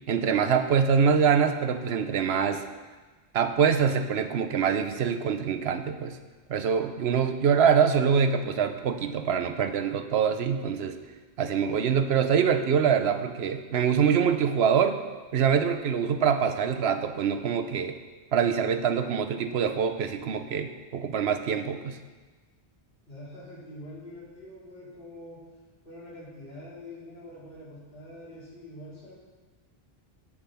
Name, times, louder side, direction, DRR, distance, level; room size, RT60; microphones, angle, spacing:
voice 1, 0.1-2.6 3.3-6.2 6.5-11.0 11.4-15.0 15.3-18.0 18.3-22.0, right 7 dB, 75° right, 8 dB, 1.0 m, -24 dB
voice 2, 23.1-25.4 25.8-29.1, left 1 dB, 60° left, -9 dB, 4.2 m, -45 dB
8.8 x 8.2 x 5.8 m, 1.3 s
omnidirectional pair, 1.1 m